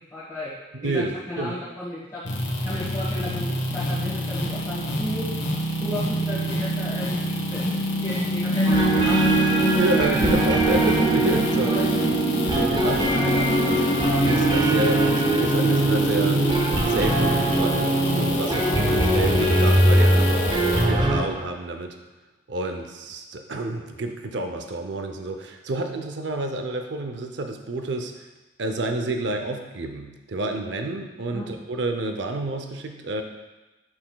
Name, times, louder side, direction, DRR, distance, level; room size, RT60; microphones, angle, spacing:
voice 1, 0.1-0.5 0.8-2.2 2.6-5.3 5.8-9.8 10.1-10.3 10.8-11.0 11.6-12.1 13.1-13.4 18.6-19.0 31.3-31.5, left 1 dB, 15° left, -11 dB, 1.3 m, -34 dB
voice 2, 0.7-1.6 9.8-11.7 12.4-16.4 16.9-18.7 19.1-20.4 20.8-21.9 22.5-28.3 28.6-33.2, right 2 dB, 70° right, 5 dB, 0.6 m, -29 dB
sound 1, 2.2-20.9, left 1 dB, 85° left, 1.1 m, -26 dB
sound 2, 8.6-21.2, right 2 dB, 25° right, 0.6 m, -21 dB
8.7 x 5.8 x 2.3 m, 1.1 s
head